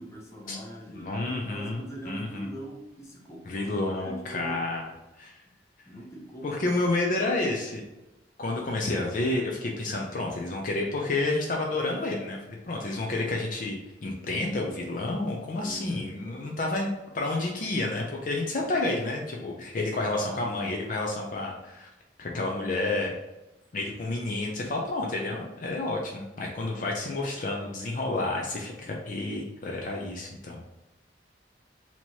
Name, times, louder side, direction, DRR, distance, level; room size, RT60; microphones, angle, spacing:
voice 1, 0.0-4.7 5.8-6.9 15.6-16.4 23.8-23.9, right 1 dB, 15° left, -2 dB, 0.8 m, -42 dB
voice 2, 0.9-2.5 3.5-4.8 5.2-5.3 6.4-7.8 8.4-12.4 12.6-21.9 22.2-23.1 23.7-30.6, left 2 dB, 45° left, 0 dB, 0.5 m, -30 dB
2.9 x 2.8 x 4.4 m, 0.97 s
head